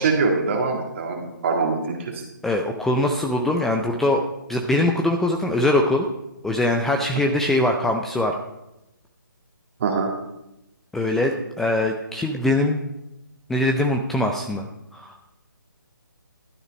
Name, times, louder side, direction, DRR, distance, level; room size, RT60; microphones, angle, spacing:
voice 1, 0.0-2.1 9.8-10.1, right 4 dB, 35° right, 1 dB, 1.9 m, -23 dB
voice 2, 2.4-6.1 6.4-8.4 10.9-12.8 13.5-14.7 14.9-15.2, left 1 dB, 5° left, 2 dB, 0.4 m, -22 dB
12.0 x 7.9 x 5.2 m, 0.90 s
figure-of-eight pair, 145°, 11 cm